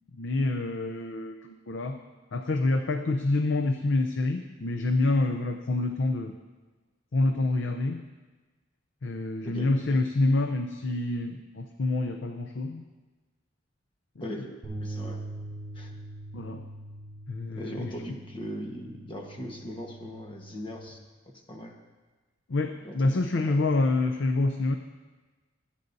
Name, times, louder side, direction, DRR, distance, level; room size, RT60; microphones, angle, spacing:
voice 1, 0.2-2.0 2.3-6.3 7.1-8.0 9.0-12.8 14.2-14.5 16.3-16.6 17.3-17.9 22.5-24.8, left 2 dB, 75° left, 6 dB, 0.6 m, -27 dB
voice 2, 9.4-10.0 14.2-14.5 14.8-15.2 15.7-16.0 17.5-21.0 21.3-21.7 22.8-23.6, equal, 30° left, 2 dB, 1.2 m, -40 dB
sound 1, 14.6-20.9, right 1 dB, ahead, 3.9 m, -42 dB
24.5 x 8.4 x 2.7 m, 1.3 s
head